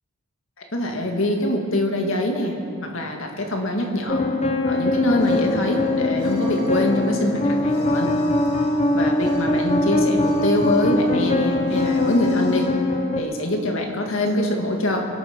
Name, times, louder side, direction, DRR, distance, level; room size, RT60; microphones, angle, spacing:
voice 1, 0.7-2.6 2.8-4.2 4.7-8.1 8.9-12.7 13.2-15.1, left 1 dB, 65° left, 2 dB, 2.0 m, -24 dB
sound 1, 4.1-13.2, left 2 dB, 30° left, 0.8 m, -22 dB
sound 2, 4.7-12.7, right 1 dB, 85° left, 3.5 m, -36 dB
24.0 x 8.7 x 6.0 m, 2.5 s
head